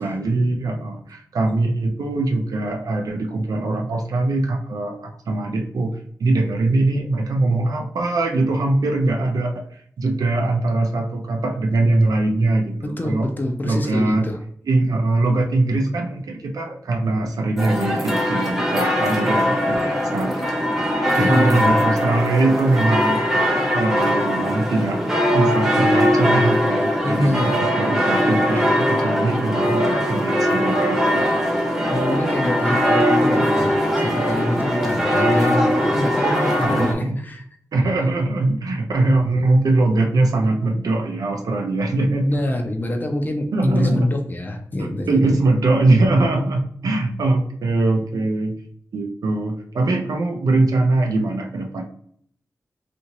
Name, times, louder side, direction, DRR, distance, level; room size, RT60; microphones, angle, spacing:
voice 1, 0.0-13.3 13.6-14.3 14.6-23.4 23.7-25.0 25.3-31.2 36.6-37.2 37.7-42.6 43.5-44.1 44.8-48.5 48.9-51.8, right 2 dB, 85° right, 3 dB, 0.5 m, -22 dB
voice 2, 12.8-14.4 21.1-21.7 27.0-27.6 28.5-28.7 31.9-37.4 42.2-45.4, left 1 dB, 30° left, 4 dB, 0.5 m, -25 dB
sound 1, 17.6-36.9, equal, 5° right, 0.8 m, -20 dB
2.8 x 2.5 x 2.8 m, 0.63 s
wide cardioid pair, 95°, 6 cm